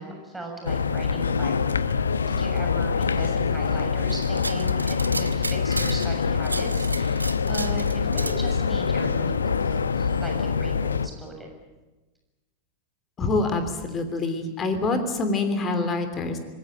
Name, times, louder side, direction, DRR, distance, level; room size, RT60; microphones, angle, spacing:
voice 1, 0.0-1.5 2.3-11.5, right 2 dB, 5° right, 2 dB, 7.1 m, -38 dB
sound 1, 0.7-11.1, left 5 dB, 75° left, 0.9 m, -25 dB
sound 2, 4.1-6.1 6.4-8.4, right 2 dB, 85° right, 1.0 m, -34 dB
voice 2, 13.2-16.4, left 3 dB, 25° left, 7 dB, 3.2 m, -26 dB
26.5 x 21.0 x 9.1 m, 1.2 s
figure-of-eight pair, 90°, 0 cm